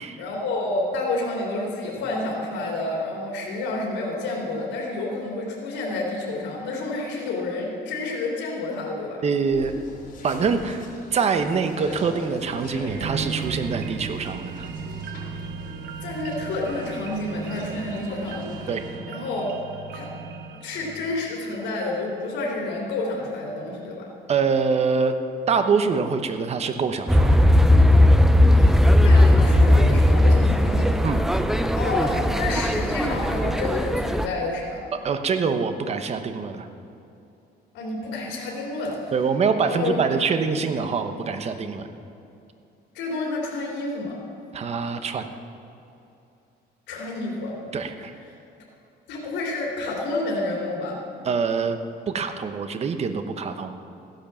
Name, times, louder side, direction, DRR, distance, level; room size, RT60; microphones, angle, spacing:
voice 1, 0.2-9.2 16.0-18.7 19.1-19.5 19.9-20.1 20.5-24.1 28.5-28.7 29.0-30.9 31.8-34.8 37.7-38.9 39.7-40.0 40.5-40.6 42.9-44.2 46.9-47.5 49.1-51.0, left 2 dB, 85° left, -2 dB, 3.0 m, -29 dB
voice 2, 9.2-9.7 10.2-10.8 11.1-14.7 18.7-18.8 24.3-25.1 25.5-27.4 31.0-31.2 35.0-36.7 39.1-41.9 44.5-45.3 47.7-48.1 51.2-51.8 52.1-53.7, right 5 dB, 35° right, 8 dB, 1.0 m, -24 dB
sound 1, 9.5-19.0, left 2 dB, 50° left, 4.6 m, -41 dB
sound 2, 12.9-22.2 22.6-22.7, right 6 dB, 65° right, 0.8 m, -36 dB
sound 3, 27.1-34.3, left 1 dB, ahead, 0.5 m, -17 dB
15.0 x 10.5 x 7.2 m, 2.7 s
cardioid pair, 145°, 18 cm